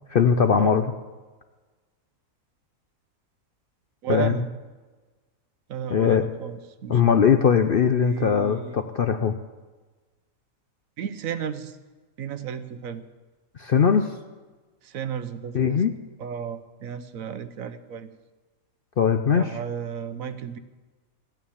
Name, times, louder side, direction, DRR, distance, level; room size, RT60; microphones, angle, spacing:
voice 1, 0.1-0.8 4.1-4.4 5.9-6.3 6.9-9.3 13.6-14.1 15.5-15.9 19.0-19.6, left 7 dB, 60° left, 8 dB, 0.6 m, -20 dB
voice 2, 4.0-4.4 5.7-7.2 8.0-8.8 11.0-11.7 12.2-13.0 14.8-15.8 16.2-18.1 19.3-20.6, right 8 dB, 75° right, 11 dB, 1.2 m, -33 dB
14.5 x 9.2 x 7.1 m, 1.3 s
omnidirectional pair, 1.5 m